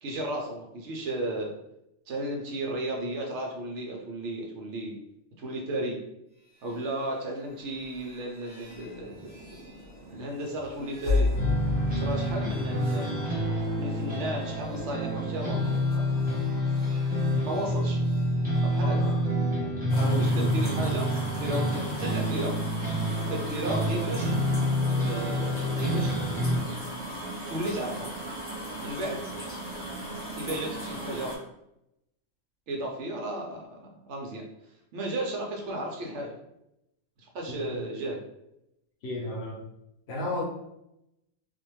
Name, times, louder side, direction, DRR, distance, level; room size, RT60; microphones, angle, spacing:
voice 1, 0.0-1.5 2.1-4.9 5.4-6.0 6.6-9.8 10.1-11.3 11.9-13.4 13.8-16.3 17.4-18.0 18.5-19.1 20.0-22.6 23.2-24.4 24.9-26.1 27.5-28.1 28.8-29.2 30.4-31.3 32.7-34.4 34.9-36.3 37.3-38.2, right 1 dB, 70° right, 0 dB, 0.9 m, -34 dB
sound 1, 6.4-19.2, left 4 dB, 45° right, 1.1 m, -36 dB
sound 2, 11.4-26.6, equal, 15° right, 0.3 m, -28 dB
voice 2, 18.8-19.2 19.9-20.8 37.6-37.7 39.0-39.6 40.1-40.4, left 1 dB, 65° left, -1 dB, 0.8 m, -33 dB
sound 3, 19.9-31.4, right 1 dB, 10° left, 0.7 m, -37 dB
2.6 x 2.1 x 3.0 m, 0.84 s
omnidirectional pair, 1.3 m